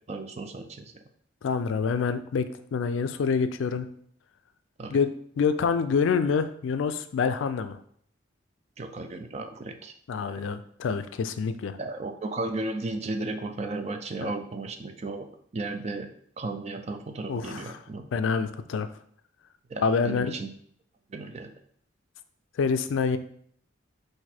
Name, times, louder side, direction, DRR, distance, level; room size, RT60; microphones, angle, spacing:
voice 1, 0.1-0.8 4.8-5.0 8.8-9.9 10.3-10.4 11.8-15.3 15.5-16.1 16.4-18.1 19.7-20.5 21.1-21.5, right 2 dB, 35° right, 6 dB, 0.4 m, -34 dB
voice 2, 1.4-3.9 4.9-5.1 5.4-7.8 10.1-11.8 14.2-14.3 17.3-17.8 18.1-18.9 19.8-20.3 22.6-23.2, left 5 dB, 75° left, 10 dB, 0.3 m, -26 dB
4.1 x 2.6 x 4.3 m, 0.63 s
head